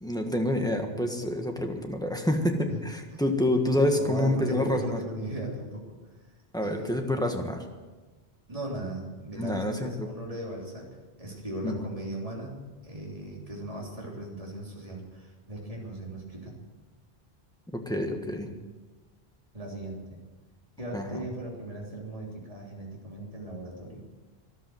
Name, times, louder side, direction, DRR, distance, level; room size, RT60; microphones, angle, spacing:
voice 1, 0.0-5.0 6.5-7.6 9.4-10.1 11.6-11.7 17.7-18.5 20.9-21.0, left 1 dB, 5° left, 3 dB, 1.5 m, -27 dB
voice 2, 3.9-6.0 6.6-6.9 8.5-10.9 11.2-12.6 12.8-16.5 19.5-20.2 20.8-24.0, right 1 dB, 35° right, -3 dB, 3.4 m, -38 dB
13.5 x 11.5 x 7.8 m, 1.3 s
omnidirectional pair, 1.1 m